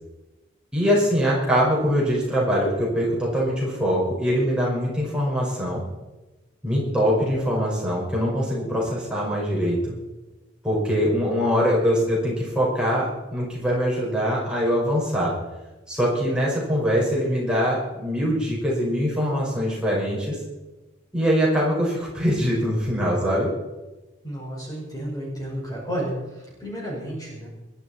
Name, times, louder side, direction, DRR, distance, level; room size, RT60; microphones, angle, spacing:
voice 1, 0.7-5.8 6.6-9.9 10.6-15.3 15.9-20.4 21.1-23.5, equal, 5° right, -5 dB, 5.5 m, -23 dB
voice 2, 24.2-26.1 26.6-27.5, right 1 dB, 20° left, -4 dB, 5.6 m, -31 dB
21.5 x 12.5 x 4.4 m, 1.1 s
head